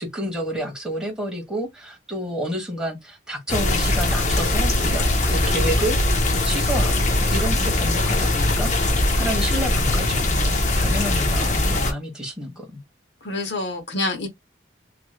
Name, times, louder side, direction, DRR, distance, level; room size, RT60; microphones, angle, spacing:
voice 1, 0.0-10.5 10.7-12.8, right 1 dB, 5° right, 1.2 m, -30 dB
sound 1, 3.5-11.9, left 2 dB, 40° left, 0.7 m, -21 dB
voice 2, 13.2-14.3, left 2 dB, 70° left, 0.9 m, -27 dB
3.2 x 2.8 x 2.2 m
head